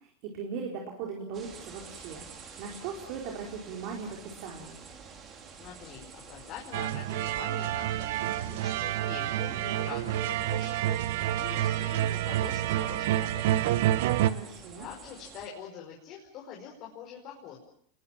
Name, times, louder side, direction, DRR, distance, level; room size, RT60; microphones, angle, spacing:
voice 1, 0.3-4.8 14.2-14.9, right 5 dB, 50° right, 0 dB, 4.4 m, -39 dB
sound 1, 1.3-15.5, right 5 dB, 30° right, 4.5 m, -49 dB
voice 2, 5.6-13.7 14.8-17.6, left 8 dB, 40° left, -1 dB, 5.3 m, -45 dB
sound 2, 6.7-14.3, right 13 dB, 70° right, 1.3 m, -28 dB
28.5 x 22.0 x 7.4 m, 0.66 s
supercardioid pair, 150°, 0 cm